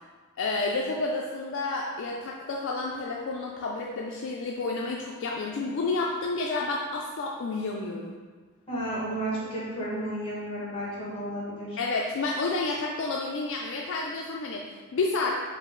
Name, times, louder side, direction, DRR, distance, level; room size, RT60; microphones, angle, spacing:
voice 1, 0.4-8.1 11.8-15.4, left 3 dB, 55° left, -1 dB, 0.3 m, -30 dB
voice 2, 8.7-11.8, right 1 dB, 25° left, -7 dB, 1.5 m, -32 dB
5.1 x 2.6 x 3.7 m, 1.5 s
head